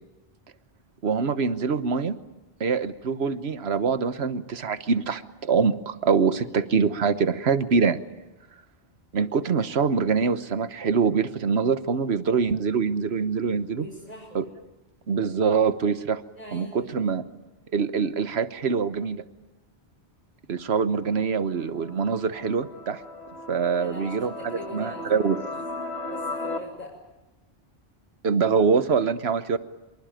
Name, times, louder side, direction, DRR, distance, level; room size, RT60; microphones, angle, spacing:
voice 1, 1.0-2.2 2.6-8.0 9.1-13.9 14.3-14.4 15.1-16.2 16.5-17.2 17.7-19.2 20.5-23.0 23.5-25.4 28.2-29.6, right 5 dB, 80° right, 12 dB, 1.4 m, -24 dB
voice 2, 13.7-14.4 16.3-16.9 23.8-25.5 26.1-27.0, equal, 40° left, -4 dB, 5.8 m, -42 dB
sound 1, 21.0-26.6, left 2 dB, 75° left, 2.1 m, -36 dB
25.5 x 23.0 x 9.1 m, 1.0 s
omnidirectional pair, 1.1 m